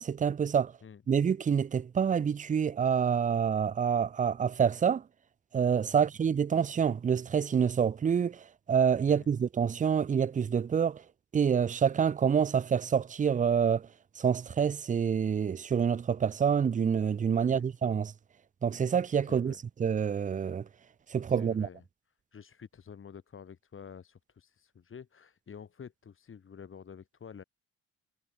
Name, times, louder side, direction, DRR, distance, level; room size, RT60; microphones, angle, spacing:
voice 1, 0.0-0.7 1.1-5.0 5.5-11.0 11.3-13.9 14.2-18.1 18.6-19.5 19.8-20.6 21.1-21.7, right 7 dB, 25° right, 0.5 m, -27 dB
voice 2, 19.2-19.6 21.3-21.8 22.3-27.4, left 7 dB, 45° left, 2.4 m, -49 dB
cardioid pair, 90°, 30 cm